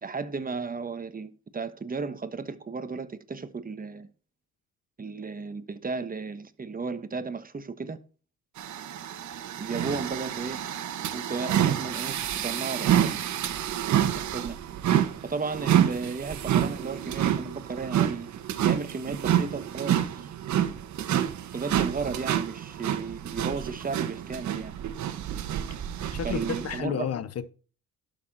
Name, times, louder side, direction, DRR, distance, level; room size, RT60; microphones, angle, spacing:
voice 1, 0.0-4.1 5.0-8.0 9.6-10.7 11.1-13.2 14.1-14.6 15.2-18.3 18.6-20.3 21.5-24.7 26.2-27.1, right 4 dB, 30° right, 1.3 m, -34 dB
sound 1, 8.6-26.8, right 10 dB, 70° right, 1.4 m, -28 dB
voice 2, 26.1-27.5, left 8 dB, 55° left, 1.1 m, -31 dB
11.5 x 6.9 x 4.2 m
cardioid pair, 90°, 30 cm